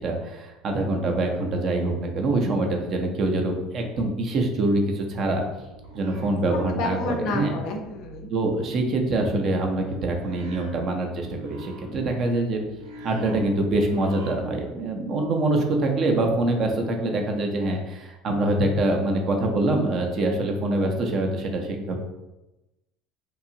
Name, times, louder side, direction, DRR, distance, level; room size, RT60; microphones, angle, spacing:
voice 1, 0.0-5.4 5.9-7.5 8.3-12.6 13.0-22.0, right 2 dB, 45° right, 3 dB, 0.6 m, -25 dB
sound 1, 5.4-7.0 7.3-14.8, right 1 dB, 90° right, 0.6 m, -44 dB
voice 2, 6.5-8.3, left 3 dB, 65° left, 4 dB, 0.5 m, -30 dB
2.8 x 2.3 x 2.7 m, 1.0 s
supercardioid pair, 105°, 0 cm